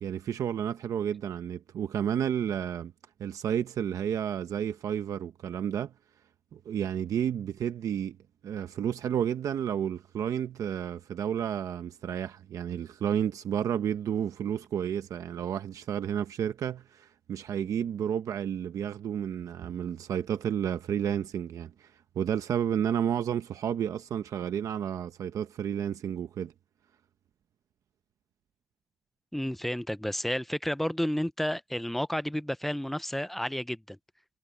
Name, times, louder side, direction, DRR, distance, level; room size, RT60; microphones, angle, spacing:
voice 1, 0.0-2.9 3.2-5.9 6.5-8.2 8.4-26.5, right 9 dB, 90° right, 0.8 m, -31 dB
voice 2, 29.3-34.0, equal, 5° left, 0.4 m, -31 dB
wide cardioid pair, 145°, 6 cm